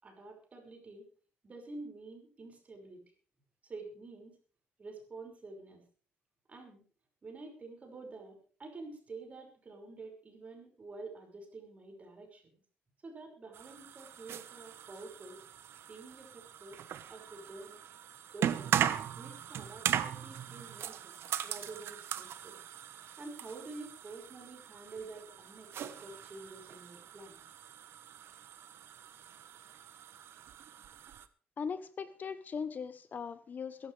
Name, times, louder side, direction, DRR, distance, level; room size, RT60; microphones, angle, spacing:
voice 1, 0.0-1.1 1.4-3.0 3.6-4.4 4.8-5.8 6.5-6.9 7.2-12.4 13.0-15.4 15.9-16.8 17.1-17.8 18.3-18.7 19.2-21.2 21.4-22.6 23.2-27.4, right 3 dB, 35° right, 2 dB, 5.7 m, -48 dB
sound 1, 13.5-31.3, right 10 dB, 70° right, 1.1 m, -39 dB
voice 2, 31.6-33.9, left 6 dB, 45° left, 13 dB, 0.9 m, -39 dB
22.5 x 12.0 x 3.4 m, 0.39 s
cardioid pair, 120°, 4 cm